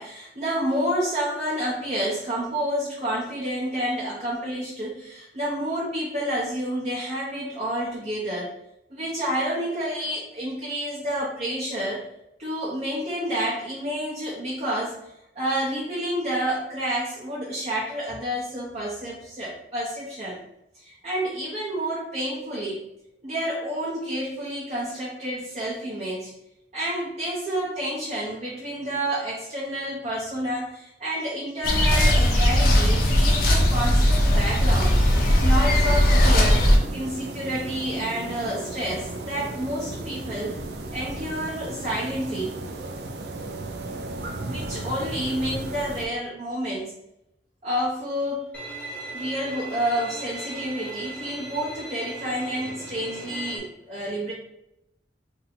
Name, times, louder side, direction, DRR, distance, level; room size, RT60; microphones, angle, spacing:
voice 1, 0.0-8.6 8.9-12.0 12.4-15.0 15.3-20.4 20.7-22.8 23.2-26.3 26.7-34.9 35.4-40.6 40.9-42.5 44.4-46.9 47.6-48.5 49.1-54.3, equal, 40° right, -6 dB, 0.7 m, -29 dB
sound 1, 31.6-36.8, equal, 55° left, 0.6 m, -18 dB
sound 2, 34.6-46.1, right 2 dB, 70° right, 0.5 m, -35 dB
Bowed string instrument, 48.5-53.6, right 1 dB, 10° left, 0.6 m, -37 dB
2.7 x 2.6 x 4.1 m, 0.82 s
head